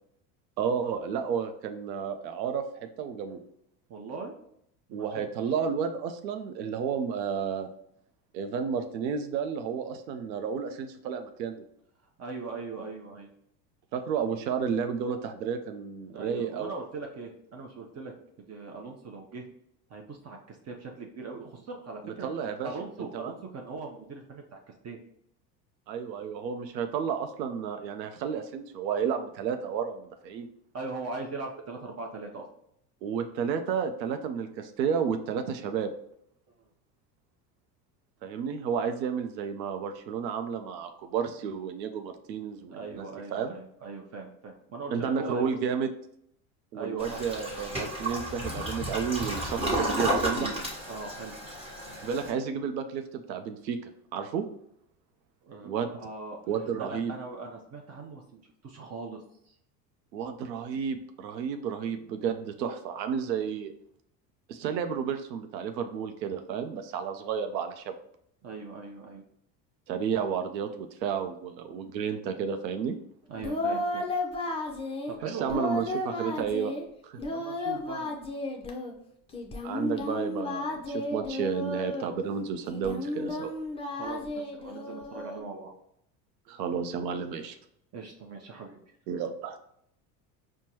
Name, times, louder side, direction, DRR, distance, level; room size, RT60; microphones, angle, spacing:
voice 1, 0.6-3.4 4.9-7.7 8.3-11.7 13.9-16.7 22.0-22.7 23.1-23.3 25.9-30.5 33.0-35.9 38.2-43.6 44.9-45.9 46.7-50.5 52.0-53.8 54.1-54.4 55.6-55.9 56.5-57.1 60.1-63.7 64.5-67.9 69.9-73.0 75.2-76.7 77.0-77.2 79.6-83.5 86.5-87.6 89.1-89.6, right 7 dB, 85° right, 7 dB, 0.6 m, -32 dB
voice 2, 3.9-4.4 4.9-5.1 12.2-13.3 16.1-18.1 18.5-19.5 19.9-22.3 22.6-24.6 24.8-25.0 30.7-32.5 42.7-45.5 46.7-47.2 50.9-51.4 55.4-56.4 56.8-59.5 68.4-69.2 73.3-74.0 75.1-75.7 77.3-78.2 83.9-85.7 87.9-88.8, right 4 dB, 30° right, 2 dB, 0.6 m, -40 dB
Toilet flush, 47.0-52.3, right 1 dB, 10° right, 1.2 m, -32 dB
Singing, 73.3-75.1 75.5-76.8 77.2-78.9 79.3-82.1 82.7-85.4, left 2 dB, 10° left, 0.5 m, -33 dB
4.5 x 2.2 x 2.8 m, 0.73 s
hypercardioid pair, 80°, 50 cm